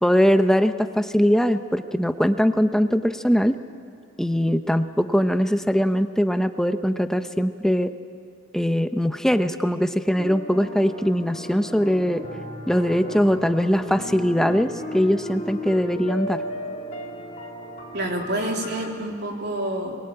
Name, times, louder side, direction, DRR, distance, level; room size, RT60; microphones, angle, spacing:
voice 1, 0.0-3.6 4.2-7.9 8.5-12.3 12.7-16.4, equal, 5° left, 9 dB, 0.7 m, -21 dB
sound 1, 10.2-18.9, left 1 dB, 35° left, 3.5 m, -36 dB
voice 2, 17.9-20.0, right 1 dB, 60° right, 1 dB, 3.5 m, -28 dB
23.0 x 22.0 x 8.8 m, 2.3 s
head